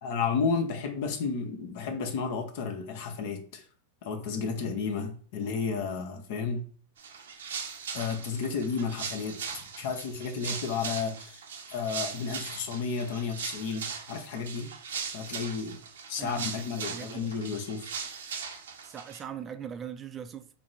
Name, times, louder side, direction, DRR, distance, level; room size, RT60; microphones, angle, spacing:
voice 1, 0.0-3.6 4.0-6.6 7.9-11.4 11.7-14.7 15.1-15.8 16.1-17.9, left 5 dB, 65° left, 0.8 m, -32 dB
sound 1, 7.0-19.2, right 6 dB, 85° right, 0.6 m, -39 dB
voice 2, 16.9-17.3 18.8-20.6, right 8 dB, 25° right, 0.4 m, -40 dB
4.3 x 2.1 x 4.0 m
hypercardioid pair, 120°, 0 cm